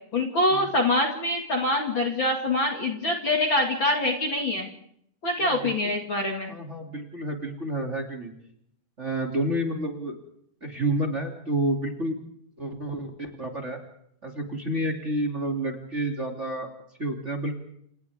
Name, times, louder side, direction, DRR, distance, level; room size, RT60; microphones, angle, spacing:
voice 1, 0.1-4.7 5.2-6.6, left 2 dB, 40° left, 1 dB, 2.6 m, -25 dB
voice 2, 5.4-5.7 6.5-8.3 9.0-10.1 10.6-12.2 12.6-13.8 14.2-16.7 17.0-17.5, right 1 dB, 20° right, 1 dB, 2.9 m, -29 dB
29.5 x 28.5 x 3.6 m, 0.71 s
omnidirectional pair, 3.9 m